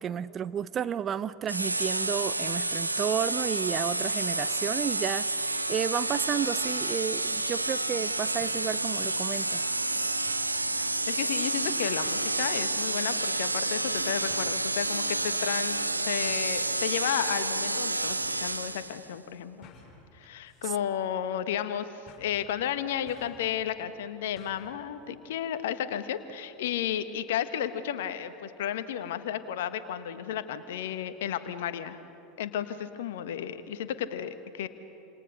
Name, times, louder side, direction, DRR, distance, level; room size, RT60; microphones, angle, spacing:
voice 1, 0.0-9.7, right 8 dB, 30° right, 15 dB, 0.7 m, -32 dB
sound 1, 1.5-19.1, right 2 dB, 85° right, 1.0 m, -29 dB
sound 2, 8.4-8.7 9.2-9.3 10.3-10.5 12.0-12.4 13.3-13.6 13.9-14.7 16.3-16.6 17.6-17.7 18.1-18.3 19.6-20.0 20.5-20.7 21.0-21.1 22.1-22.4 23.1-23.5 24.4-24.7 25.0-25.1, left 4 dB, 30° left, 7.5 m, -53 dB
voice 2, 10.8-15.8 16.0-19.7 20.1-32.0 32.4-34.7, left 10 dB, 60° left, 11 dB, 1.4 m, -33 dB
28.5 x 27.5 x 6.7 m, 2.8 s
figure-of-eight pair, 80°, 0 cm